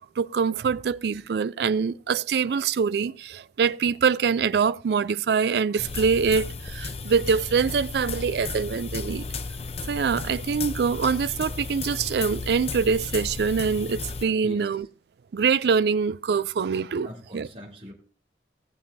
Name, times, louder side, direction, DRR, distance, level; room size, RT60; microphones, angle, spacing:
voice 1, 0.2-9.2 9.9-14.8 15.3-17.1 17.3-17.4, right 6 dB, 65° right, 0.4 m, -24 dB
sound 1, 5.8-14.2, left 4 dB, 35° left, 0.6 m, -34 dB
voice 2, 14.4-14.9 17.0-17.9, left 1 dB, 35° right, 3.1 m, -41 dB
18.0 x 7.0 x 2.7 m
head